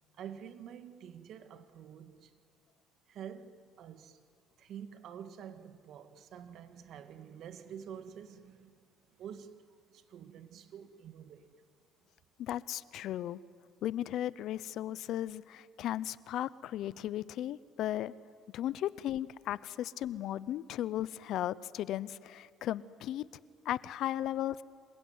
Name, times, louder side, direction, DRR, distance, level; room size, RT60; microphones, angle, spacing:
voice 1, 0.1-2.3 3.1-4.2 4.6-8.7 9.2-11.5, right 8 dB, 60° right, 1.9 m, -48 dB
voice 2, 12.4-13.4 13.8-18.1 18.5-23.2 23.6-24.6, left 12 dB, 65° left, 0.7 m, -36 dB
27.0 x 22.5 x 9.6 m
cardioid pair, 115°, 0 cm